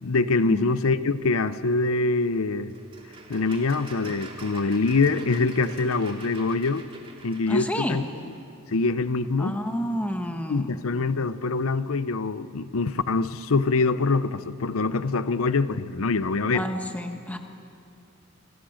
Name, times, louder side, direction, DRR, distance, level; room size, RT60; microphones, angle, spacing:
voice 1, 0.0-2.7 3.3-6.8 7.2-8.0 8.7-9.6 10.5-16.6, left 3 dB, 90° left, 14 dB, 0.7 m, -24 dB
sound 1, 2.7-8.4, right 3 dB, 25° right, 2.5 m, -45 dB
voice 2, 7.5-8.0 9.4-10.7 16.5-17.4, equal, 5° left, 5 dB, 1.3 m, -29 dB
28.0 x 23.5 x 6.4 m, 2.5 s
head